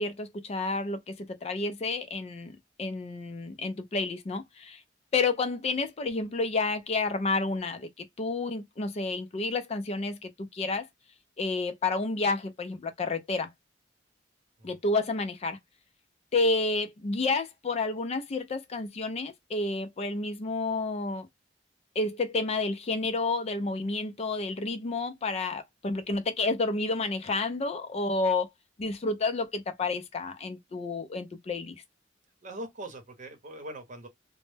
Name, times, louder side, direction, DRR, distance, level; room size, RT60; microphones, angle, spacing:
voice 1, 0.0-4.8 5.1-10.9 11.4-13.5 14.6-15.6 16.3-21.3 22.0-28.5 28.8-31.8, left 3 dB, 35° left, 0.4 m, -30 dB
voice 2, 32.4-34.1, right 1 dB, 45° right, 0.8 m, -41 dB
2.1 x 2.0 x 3.1 m
head